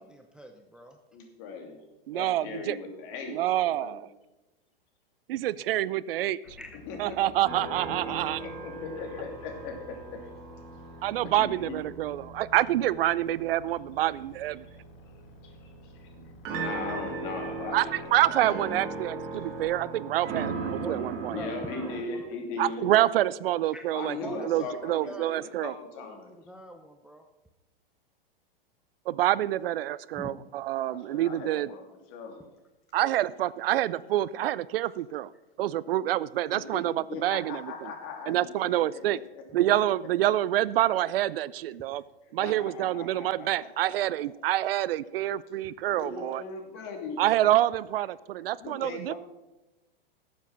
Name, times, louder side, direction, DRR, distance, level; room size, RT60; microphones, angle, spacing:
voice 1, 0.1-1.0 6.4-6.8 20.5-22.3 23.7-24.8 25.1-25.6 25.9-27.2 30.1-30.3 39.5-39.6 45.6-46.1 46.8-46.9, right 1 dB, 5° right, 4 dB, 0.6 m, -45 dB
voice 2, 1.1-1.8 2.1-4.0 6.9-10.2 11.4-11.8 15.4-16.1 16.5-18.4 19.3-19.4 21.3-22.8 23.9-26.3 30.8-32.4 36.5-36.8 37.1-39.4 42.2-44.1 45.9-47.2 48.6-49.2, left 4 dB, 45° left, 3 dB, 2.8 m, -39 dB
voice 3, 2.1-2.8 3.3-4.1 5.3-6.4 7.0-8.4 11.0-14.6 17.7-17.9 18.1-21.4 22.6-24.2 24.4-25.7 29.1-31.7 32.9-35.3 35.6-37.6 38.3-39.2 39.5-42.0 42.3-46.4 47.2-49.1, right 13 dB, 70° right, 19 dB, 0.5 m, -27 dB
sound 1, 6.4-19.6, equal, 75° left, 1.7 m, -52 dB
sound 2, 7.4-22.0, right 4 dB, 45° right, 2.8 m, -38 dB
12.5 x 7.5 x 6.0 m, 1.0 s
hypercardioid pair, 125°, 30 cm